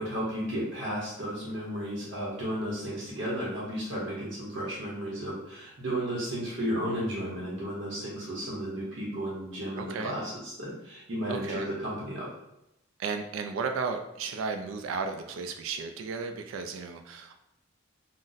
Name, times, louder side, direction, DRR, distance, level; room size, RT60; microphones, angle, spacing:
voice 1, 0.0-12.3, equal, 65° right, -6 dB, 0.7 m, -33 dB
voice 2, 9.8-10.1 11.3-11.7 13.0-17.4, right 5 dB, 85° right, 7 dB, 0.3 m, -34 dB
2.5 x 2.0 x 3.9 m, 0.86 s
head